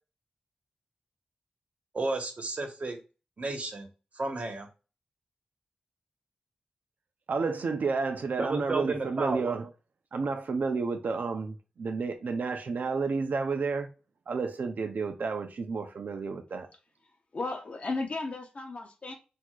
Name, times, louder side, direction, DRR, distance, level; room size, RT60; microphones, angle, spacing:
voice 1, 1.9-3.0 3.4-3.9 4.1-4.7 8.4-9.5, right 3 dB, 50° right, 1.2 m, -32 dB
voice 2, 7.3-9.7 10.1-13.9 14.3-16.7, right 4 dB, 75° right, 0.7 m, -31 dB
voice 3, 17.3-19.1, left 3 dB, 50° left, 1.1 m, -34 dB
6.4 x 2.8 x 2.5 m
wide cardioid pair, 85°, 3 cm